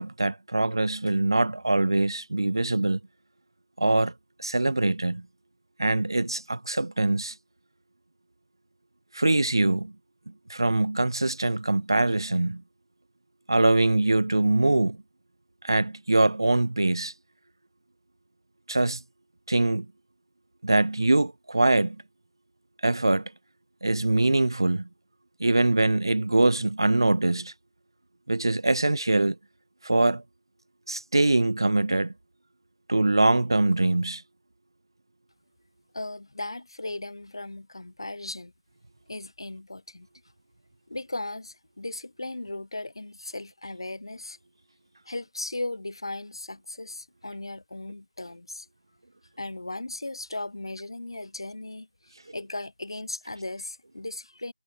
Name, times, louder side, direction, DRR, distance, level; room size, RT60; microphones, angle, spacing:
voice 1, 0.0-3.0 3.8-4.1 4.4-5.2 5.8-7.3 9.1-9.9 10.5-12.6 13.5-15.0 15.6-17.1 18.7-19.0 19.5-19.9 20.6-22.0 22.8-23.3 23.8-24.9 25.4-27.5 28.3-29.4 29.8-30.2 30.9-32.1 32.9-34.2, right 2 dB, 45° right, 0.5 m, -23 dB
voice 2, 35.9-38.5 39.1-40.1 40.9-44.4 45.1-48.7 49.4-54.5, left 2 dB, 50° left, 2.1 m, -37 dB
figure-of-eight pair, 180°, 3 cm